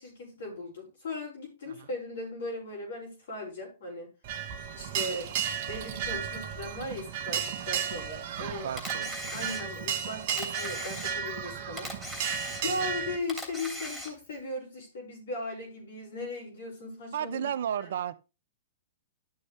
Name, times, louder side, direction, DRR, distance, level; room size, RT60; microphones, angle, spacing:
voice 1, 0.0-4.1 4.7-5.3 5.7-8.7 9.3-11.9 12.6-17.5, left 2 dB, 70° left, 5.9 m, -38 dB
sound 1, 4.2-13.2, right 8 dB, 50° right, 1.1 m, -34 dB
voice 2, 8.4-9.3 12.6-12.9 17.1-18.2, right 9 dB, 65° right, 0.7 m, -35 dB
Camera, 8.8-9.9 10.3-11.4 11.8-12.9 13.3-14.3, equal, 5° left, 3.2 m, -39 dB
11.5 x 6.6 x 3.3 m
hypercardioid pair, 120°, 0 cm